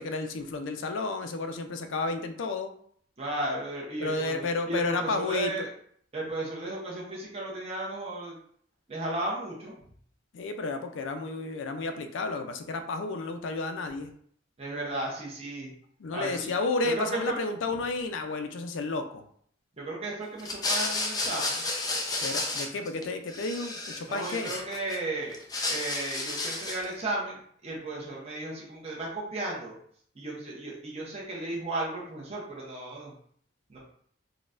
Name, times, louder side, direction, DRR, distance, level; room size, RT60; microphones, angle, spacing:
voice 1, 0.0-2.7 4.0-5.5 10.3-14.1 16.0-19.2 22.2-24.5, left 3 dB, 90° left, 7 dB, 0.4 m, -32 dB
voice 2, 3.2-5.7 6.1-8.4 8.9-9.7 14.6-15.7 16.1-16.5 17.0-17.2 19.8-21.6 24.1-25.4 25.7-29.7 30.2-33.1 33.7-33.8, right 2 dB, 35° right, -4 dB, 0.8 m, -34 dB
sound 1, 20.4-23.0 23.3-25.0 25.3-26.9, left 2 dB, 20° left, 0.4 m, -32 dB
3.9 x 2.1 x 2.5 m, 0.62 s
head